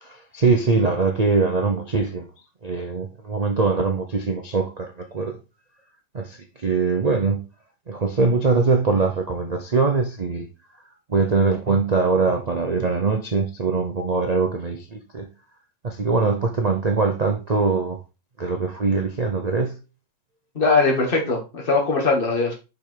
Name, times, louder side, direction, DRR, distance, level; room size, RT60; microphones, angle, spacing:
voice 1, 0.0-2.3 2.6-5.4 6.1-7.4 7.9-10.5 11.1-15.3 15.8-18.0 18.4-19.8, right 4 dB, 50° right, 0.5 m, -22 dB
voice 2, 20.6-22.5, left 3 dB, 30° left, 2.1 m, -20 dB
5.5 x 5.1 x 4.5 m
omnidirectional pair, 1.9 m